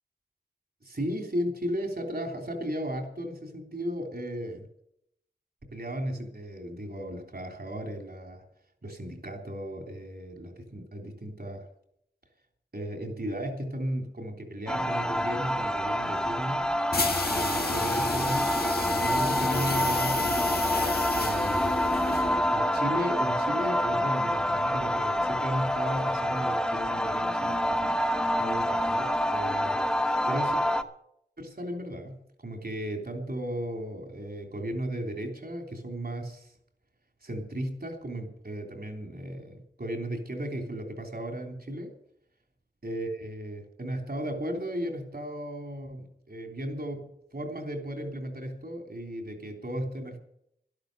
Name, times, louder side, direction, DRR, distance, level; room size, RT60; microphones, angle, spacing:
voice 1, 0.8-4.7 5.7-8.4 8.8-11.7 12.7-16.7 17.3-18.6 18.9-20.8 21.2-21.8 22.5-28.0 28.4-30.6 31.4-32.1 32.4-36.5 37.2-41.9 42.8-50.2, equal, 60° right, 3 dB, 3.4 m, -35 dB
sound 1, 14.7-30.8, equal, 5° left, 1.2 m, -27 dB
sound 2, 16.9-22.5, left 3 dB, 60° left, 1.6 m, -31 dB
12.5 x 12.0 x 6.7 m, 0.74 s
wide cardioid pair, 65°, 18 cm